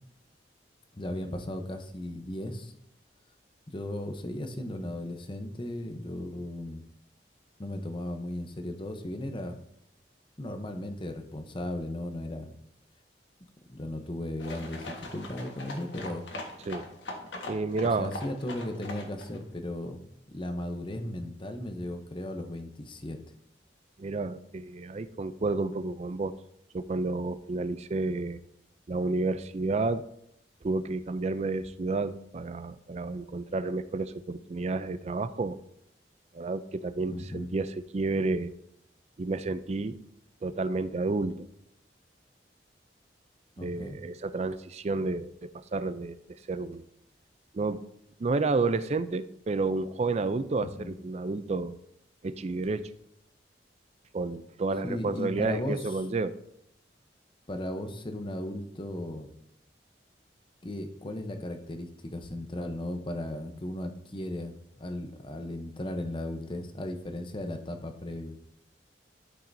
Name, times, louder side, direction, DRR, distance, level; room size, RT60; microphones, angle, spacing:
voice 1, 0.9-2.7 3.7-6.8 7.6-9.6 10.4-12.5 13.7-16.3 17.8-23.2 37.1-37.5 43.6-44.0 50.6-50.9 54.8-56.0 57.5-59.3 60.6-68.4, left 1 dB, 30° left, 7 dB, 0.8 m, -36 dB
sound 1, 14.4-19.4, left 1 dB, 85° left, 1.4 m, -41 dB
voice 2, 17.5-18.1 24.0-26.3 26.7-28.4 28.9-30.1 30.6-35.6 36.3-38.5 39.2-40.0 40.4-41.5 43.6-46.8 47.5-47.8 48.2-51.8 52.2-52.9 54.1-56.4, right 3 dB, 35° right, 13 dB, 0.4 m, -30 dB
12.0 x 5.7 x 2.7 m, 0.75 s
head